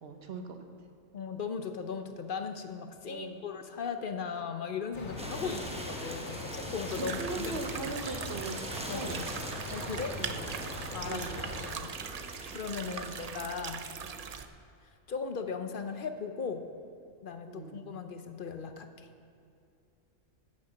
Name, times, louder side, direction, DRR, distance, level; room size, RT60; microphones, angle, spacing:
voice 1, 0.0-0.6 3.1-3.4 5.4-5.7 7.0-9.3 10.2-10.5 11.1-11.5 12.8-13.3 14.0-14.1 17.5-17.8, right 4 dB, 55° right, 5 dB, 1.1 m, -40 dB
voice 2, 1.1-7.8 8.9-9.2 9.7-10.1 10.9-11.5 11.8-11.9 12.5-13.9 15.1-16.6 17.2-19.1, left 6 dB, 50° left, 7 dB, 0.7 m, -38 dB
sound 1, 4.9-11.7, left 1 dB, 90° left, 2.3 m, -42 dB
sound 2, 5.2-13.3, equal, 5° right, 0.7 m, -43 dB
sound 3, 6.9-14.4, right 6 dB, 70° right, 0.3 m, -41 dB
10.5 x 6.6 x 7.1 m, 2.6 s
omnidirectional pair, 1.3 m